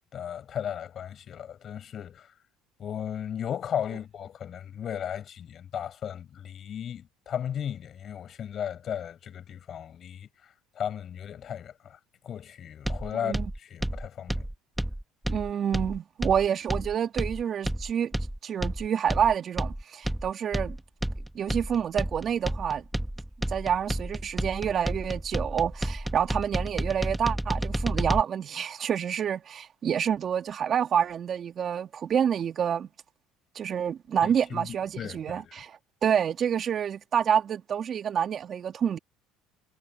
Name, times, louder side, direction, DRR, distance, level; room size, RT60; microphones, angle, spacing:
voice 1, 0.1-2.3 2.8-10.3 10.8-12.0 12.2-14.5 34.5-35.6, left 9 dB, 45° left, 5.5 m, -35 dB
sound 1, 12.8-28.2, right 1 dB, 5° right, 1.4 m, -31 dB
voice 2, 13.1-13.5 15.3-18.1 18.4-20.8 21.3-22.8 23.5-32.9 33.5-39.0, right 8 dB, 45° right, 2.6 m, -28 dB
supercardioid pair, 85°, 0 cm